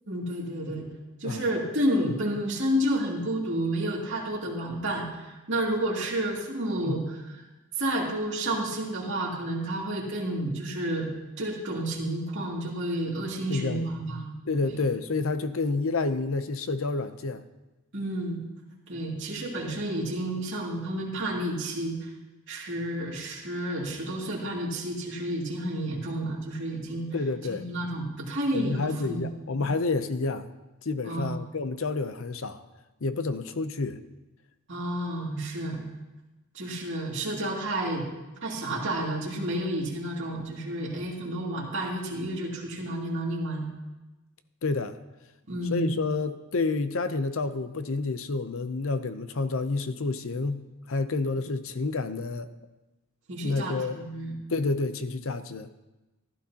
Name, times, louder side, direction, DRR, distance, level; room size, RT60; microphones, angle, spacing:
voice 1, 0.1-0.9 1.2-7.4 7.8-11.1 11.4-14.3 14.6-14.8 17.9-18.4 18.9-22.1 22.5-27.1 27.4-29.3 29.6-29.7 31.0-31.4 34.7-35.9 36.5-38.1 38.4-43.7 45.5-45.9 53.3-54.4, right 1 dB, 55° right, -4 dB, 2.5 m, -30 dB
voice 2, 13.5-13.9 14.5-17.4 27.1-27.6 28.5-30.5 30.8-32.6 33.0-34.0 44.6-45.0 45.7-50.6 50.9-52.5 53.4-54.0 54.5-55.7, left 3 dB, 60° left, 11 dB, 0.6 m, -29 dB
15.5 x 12.0 x 2.9 m, 1.1 s
head